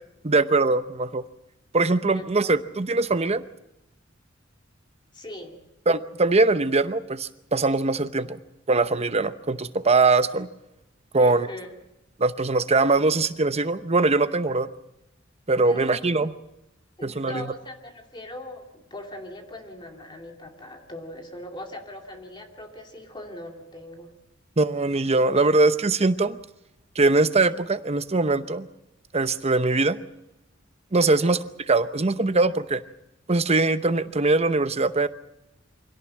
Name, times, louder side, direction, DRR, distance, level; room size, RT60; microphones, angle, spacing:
voice 1, 0.2-1.2 1.7-3.4 5.9-8.4 8.7-10.5 11.1-11.5 12.2-14.7 15.5-16.3 17.0-17.5 24.6-26.4 26.9-28.7 29.1-30.0 30.9-31.4 31.7-32.8 33.3-35.1, right 3 dB, 30° right, 12 dB, 0.8 m, -22 dB
voice 2, 5.1-5.6 11.2-11.7 15.7-16.0 17.0-24.1 31.0-31.4, left 1 dB, 25° left, 3 dB, 2.6 m, -40 dB
25.0 x 17.5 x 7.6 m, 0.90 s
head